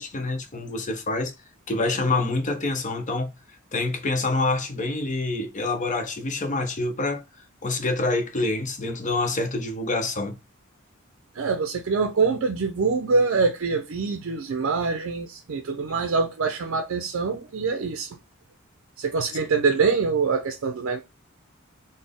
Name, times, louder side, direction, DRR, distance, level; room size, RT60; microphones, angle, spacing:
voice 1, 0.0-1.3 1.7-3.3 3.7-7.2 7.6-10.4, left 2 dB, 35° left, 0.7 m, -26 dB
voice 2, 11.3-18.1 19.0-21.0, right 4 dB, 65° right, 0.4 m, -24 dB
4.0 x 2.0 x 3.5 m
head